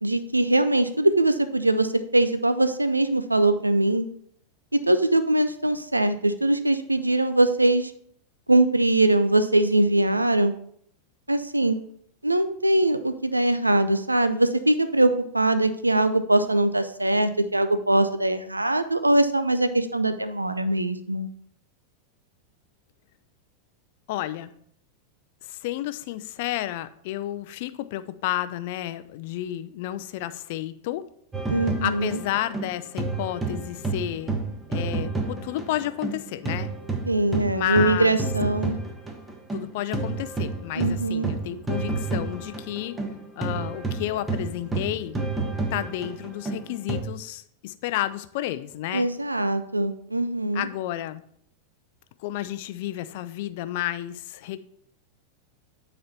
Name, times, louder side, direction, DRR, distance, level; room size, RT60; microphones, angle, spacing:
voice 1, 0.0-4.1 4.7-7.9 8.5-10.5 11.3-11.8 12.2-21.3 31.5-32.2 37.1-38.8 40.8-41.3 48.9-50.7, right 1 dB, 90° right, 11 dB, 0.5 m, -22 dB
voice 2, 24.1-24.5 25.4-31.0 31.8-34.3 34.7-36.7 37.5-38.2 39.5-43.0 43.4-45.2 45.7-49.1 50.5-51.2 52.2-54.6, left 14 dB, 55° left, 13 dB, 0.5 m, -31 dB
sound 1, 31.3-36.2 36.4-47.0, right 3 dB, 15° right, 1.2 m, -30 dB
9.2 x 4.3 x 4.2 m, 0.65 s
figure-of-eight pair, 90°, 0 cm